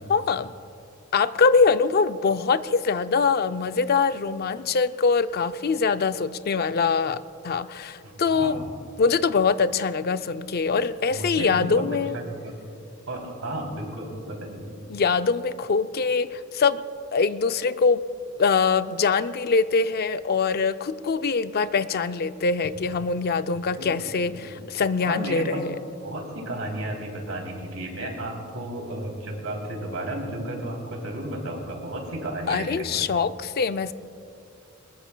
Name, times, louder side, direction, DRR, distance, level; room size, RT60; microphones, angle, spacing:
voice 1, 0.1-0.5 1.1-8.6 9.0-12.2 14.9-16.8 17.1-18.0 18.4-25.7 32.5-33.9, left 5 dB, 50° left, 12 dB, 0.4 m, -23 dB
voice 2, 8.0-8.7 11.1-11.8 12.1-12.5 13.1-14.7 23.7-23.9 24.2-24.3 25.0-25.6 26.0-33.0, right 1 dB, 85° right, 0 dB, 3.1 m, -33 dB
22.0 x 20.5 x 2.3 m, 2.5 s
head